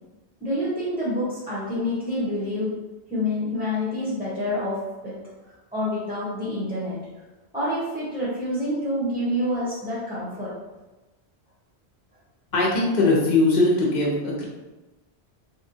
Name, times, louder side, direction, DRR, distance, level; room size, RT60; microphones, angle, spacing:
voice 1, 0.4-2.7 3.1-5.1 5.7-7.0 7.5-10.5, left 1 dB, 5° right, -11 dB, 0.9 m, -27 dB
voice 2, 12.5-14.4, left 2 dB, 45° left, -4 dB, 0.8 m, -20 dB
3.5 x 2.2 x 2.7 m, 1.1 s
omnidirectional pair, 1.1 m